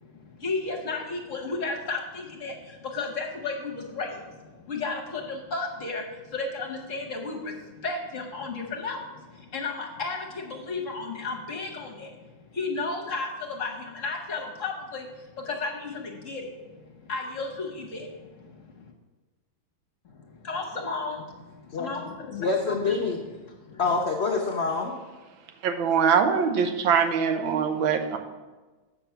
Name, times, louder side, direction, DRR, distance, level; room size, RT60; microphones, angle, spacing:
voice 1, 0.0-12.2 12.5-18.8 20.1-22.8 23.7-23.8, left 3 dB, 50° left, 1 dB, 1.1 m, -34 dB
voice 2, 22.4-23.2 23.8-24.9, left 4 dB, 65° left, 1 dB, 0.6 m, -26 dB
voice 3, 25.6-28.2, right 6 dB, 80° right, 6 dB, 1.6 m, -23 dB
8.0 x 6.0 x 5.7 m, 1.2 s
omnidirectional pair, 2.2 m